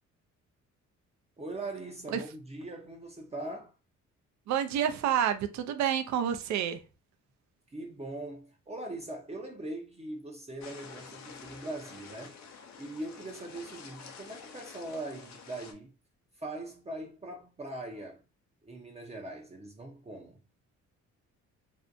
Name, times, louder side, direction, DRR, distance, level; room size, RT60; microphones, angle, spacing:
voice 1, 1.4-3.7 7.7-12.4 12.8-15.9 16.3-18.2 18.6-20.4, right 2 dB, 20° right, 0.6 m, -41 dB
voice 2, 4.5-6.8, right 9 dB, 65° right, 0.5 m, -29 dB
sound 1, 10.6-15.7, left 6 dB, 65° left, 0.6 m, -49 dB
2.6 x 2.1 x 2.5 m
cardioid pair, 90°, 30 cm